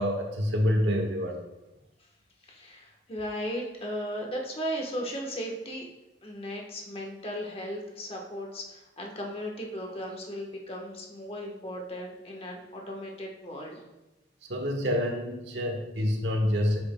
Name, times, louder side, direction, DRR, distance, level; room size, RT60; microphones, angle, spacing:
voice 1, 0.0-1.4 14.5-16.8, equal, 80° right, 3 dB, 1.4 m, -27 dB
voice 2, 2.5-5.9 6.2-13.8, equal, 35° left, 0 dB, 1.2 m, -36 dB
9.3 x 7.9 x 2.2 m, 1.0 s
head